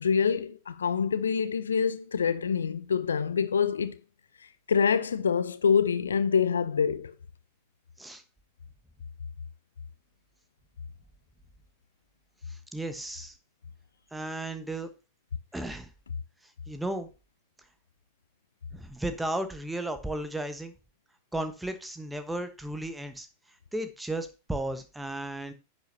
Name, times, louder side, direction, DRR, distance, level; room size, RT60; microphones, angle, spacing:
voice 1, 0.0-4.0 4.7-7.1, left 6 dB, 70° left, 0.5 m, -26 dB
voice 2, 12.5-13.4 14.1-14.9 15.5-15.9 16.7-17.1 18.7-20.7 21.3-23.3 23.7-25.5, right 1 dB, 5° right, 1.2 m, -34 dB
10.5 x 8.4 x 2.8 m
figure-of-eight pair, 90°, 0 cm